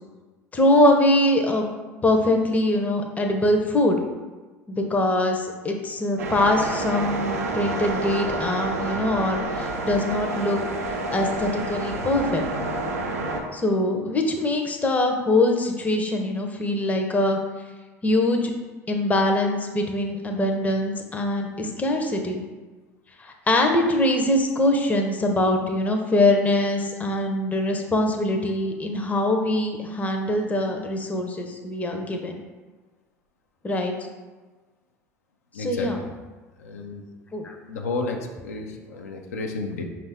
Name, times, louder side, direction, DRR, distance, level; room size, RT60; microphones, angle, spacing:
voice 1, 0.5-1.7 2.0-4.0 4.7-10.6 11.1-12.4 13.5-17.4 18.0-18.5 18.9-22.4 23.2-32.4 33.6-33.9 35.6-36.0 37.3-37.5, left 1 dB, 20° left, 3 dB, 0.6 m, -23 dB
sound 1, 6.2-13.4, right 2 dB, 75° right, 0.5 m, -29 dB
voice 2, 35.5-36.1 36.6-37.1 37.7-39.8, left 3 dB, 80° left, 2 dB, 0.5 m, -32 dB
5.2 x 2.4 x 3.4 m, 1.3 s
figure-of-eight pair, 65°, 8 cm